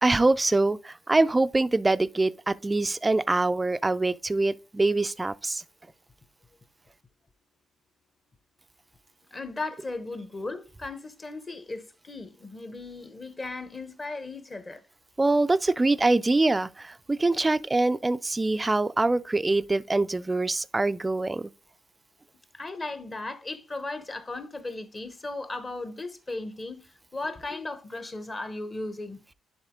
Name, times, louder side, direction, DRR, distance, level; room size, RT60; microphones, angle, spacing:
voice 1, 0.0-5.6 15.2-21.5, right 2 dB, 20° right, 0.3 m, -24 dB
voice 2, 9.3-14.8 22.5-29.2, left 2 dB, 30° left, 0.9 m, -36 dB
10.5 x 3.6 x 3.6 m
cardioid pair, 90°, 0 cm